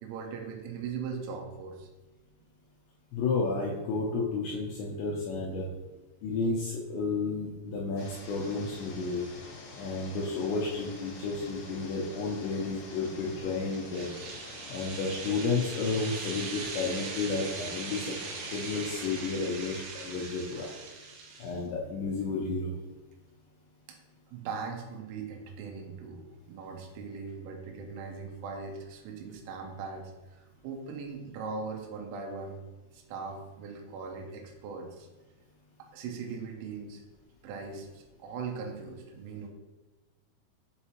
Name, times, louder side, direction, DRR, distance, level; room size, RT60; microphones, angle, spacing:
voice 1, 0.0-1.9 23.9-24.0 24.3-32.6 32.9-35.1 35.8-37.0 37.4-39.5, right 5 dB, 90° right, 2 dB, 3.3 m, -40 dB
voice 2, 3.1-5.7 6.2-9.2 9.7-14.1 14.7-18.2 18.5-20.7 21.4-22.7, left 3 dB, 80° left, -3 dB, 2.6 m, -32 dB
sound 1, 8.0-19.3, left 3 dB, 65° left, 2.9 m, -47 dB
sound 2, 13.7-21.6, right 4 dB, 75° right, 2.6 m, -41 dB
7.0 x 4.8 x 2.9 m, 1.1 s
omnidirectional pair, 5.7 m